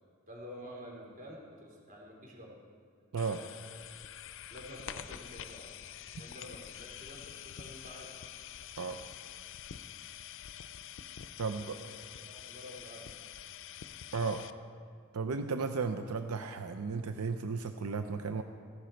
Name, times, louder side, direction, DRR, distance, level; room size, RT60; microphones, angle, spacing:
voice 1, 0.3-2.6 4.5-5.7 6.2-8.1 11.4-11.8 12.2-13.1, equal, 40° right, -3 dB, 3.5 m, -49 dB
voice 2, 3.1-3.4 8.8-9.0 11.4-11.6 14.1-14.4 15.1-18.4, right 4 dB, 85° right, 8 dB, 0.6 m, -34 dB
sound 1, 3.2-14.5, left 10 dB, 60° left, 0.5 m, -47 dB
15.5 x 11.5 x 4.5 m, 2.3 s
head